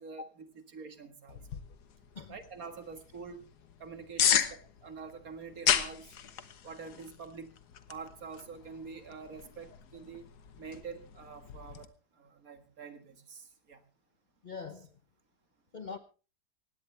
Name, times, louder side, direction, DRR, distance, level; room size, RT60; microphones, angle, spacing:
voice 1, 0.0-1.4 2.3-3.5 3.8-4.4 4.8-6.1 6.6-7.5 7.9-10.3 10.6-11.9 12.1-13.8, right 5 dB, 60° right, 2.2 m, -46 dB
sound 1, 1.3-11.9, left 9 dB, 75° left, 1.6 m, -35 dB
voice 2, 14.4-14.9 15.7-16.0, left 4 dB, 40° left, 0.7 m, -42 dB
18.5 x 16.5 x 3.3 m
omnidirectional pair, 1.8 m